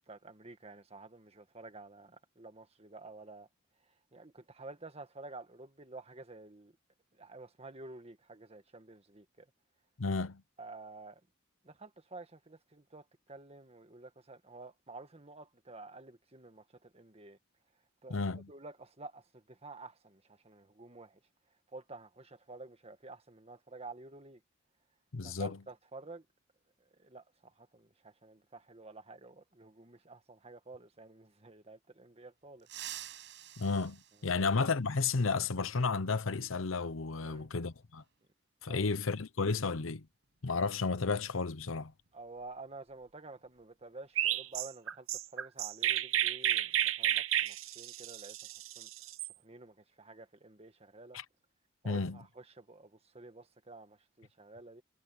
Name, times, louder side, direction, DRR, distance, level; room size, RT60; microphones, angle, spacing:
voice 1, 0.1-3.5 4.1-6.7 7.2-9.5 10.6-11.2 11.6-17.4 18.0-18.2 18.5-21.2 21.7-24.4 25.2-26.3 27.0-32.7 37.2-37.5 38.7-38.9 42.1-48.4 48.8-48.9 49.4-51.2 51.8-54.8, right 3 dB, 30° right, 1.8 m, -50 dB
voice 2, 10.0-10.4 18.1-18.5 25.1-25.6 33.6-38.0 38.6-40.0 40.4-41.9 51.1-51.2 51.8-52.2, left 4 dB, 85° left, 0.9 m, -32 dB
sound 1, 32.6-35.0 36.7-36.8 38.0-38.1 39.7-39.9 40.2-40.4 40.9-43.1 43.4-43.6 44.0-44.5, right 12 dB, 65° right, 5.7 m, -49 dB
Chirp tweet, 44.2-49.3, right 11 dB, 90° right, 0.8 m, -32 dB
head